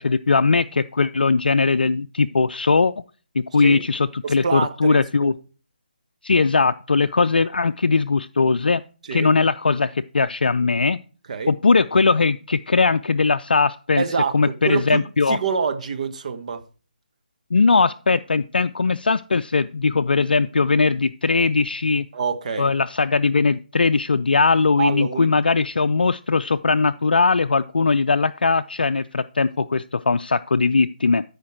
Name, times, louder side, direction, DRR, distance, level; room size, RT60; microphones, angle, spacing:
voice 1, 0.0-2.9 3.3-5.3 6.2-8.8 9.1-11.0 11.5-14.0 14.3-15.4 17.5-22.1 22.6-31.2, left 4 dB, 75° left, 0.4 m, -19 dB
voice 2, 4.2-5.4 9.0-9.3 11.3-11.5 14.0-16.6 22.1-22.7 24.8-25.3, right 5 dB, 45° right, 1.2 m, -26 dB
13.0 x 5.1 x 4.6 m
figure-of-eight pair, 150°, 5 cm